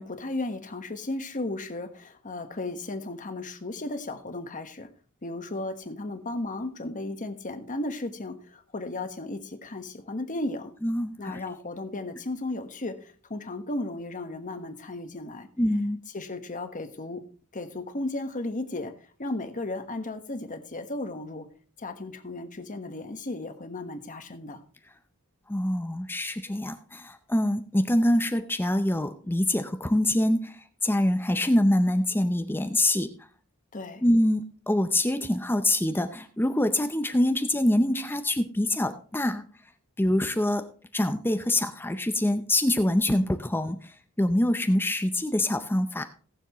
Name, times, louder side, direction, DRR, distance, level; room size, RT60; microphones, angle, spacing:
voice 1, 0.0-4.9 5.2-10.7 11.2-15.5 16.1-17.2 17.5-18.9 19.2-21.5 21.8-24.6 33.7-34.0, left 2 dB, 35° left, 8 dB, 1.3 m, -35 dB
voice 2, 10.8-11.4 15.6-16.0 25.5-33.1 34.0-39.4 40.0-40.6 40.9-46.0, left 1 dB, 10° left, 8 dB, 0.6 m, -25 dB
19.0 x 7.0 x 3.0 m, 0.40 s
head